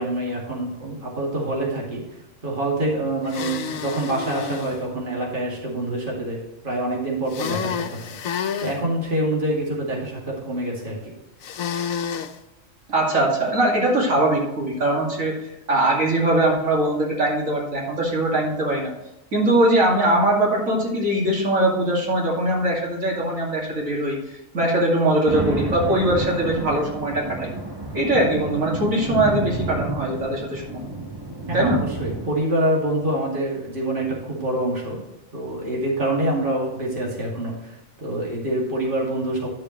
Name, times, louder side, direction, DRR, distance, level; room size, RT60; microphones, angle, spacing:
voice 1, 0.0-2.0 2.4-8.2 8.6-11.1 31.5-35.0 35.3-39.5, right 1 dB, 40° right, -3 dB, 2.5 m, -26 dB
sound 1, 3.3-4.8 7.3-8.8 11.4-12.3, left 7 dB, 80° left, 1.1 m, -29 dB
voice 2, 12.9-15.4 15.7-18.9 19.3-24.2 24.5-27.5 27.9-30.9 31.5-31.8, right 1 dB, 75° right, -3 dB, 2.7 m, -21 dB
sound 2, 25.3-32.4, right 2 dB, 20° right, 1.1 m, -30 dB
11.5 x 6.9 x 3.1 m, 0.92 s
omnidirectional pair, 1.4 m